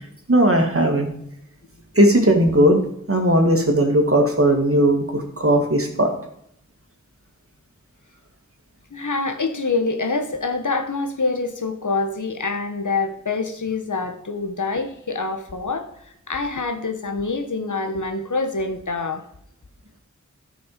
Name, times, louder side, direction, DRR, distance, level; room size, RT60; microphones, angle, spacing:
voice 1, 0.3-1.1 2.0-2.8 3.1-6.1, right 1 dB, 50° right, 2 dB, 2.2 m, -17 dB
voice 2, 8.9-15.9 16.3-19.2, left 3 dB, 85° left, 7 dB, 1.2 m, -25 dB
13.5 x 5.9 x 5.1 m, 0.73 s
wide cardioid pair, 40°, 30 cm